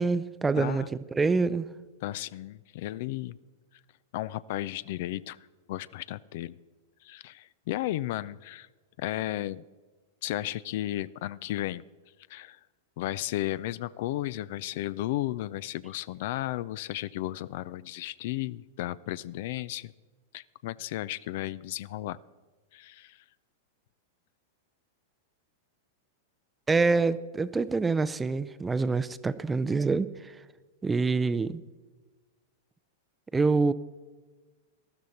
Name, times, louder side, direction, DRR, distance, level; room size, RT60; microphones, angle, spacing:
voice 1, 0.0-1.7 26.7-30.3 30.8-31.6 33.3-33.7, right 4 dB, 15° right, 15 dB, 0.5 m, -26 dB
voice 2, 0.6-0.9 2.0-3.4 4.1-5.4 5.7-6.6 7.0-8.7 9.0-9.6 10.2-11.8 12.3-12.6 13.0-19.9 20.3-22.2 22.7-23.2, left 15 dB, 55° left, 19 dB, 0.3 m, -34 dB
13.0 x 13.0 x 4.2 m, 1.3 s
hypercardioid pair, 100°, 0 cm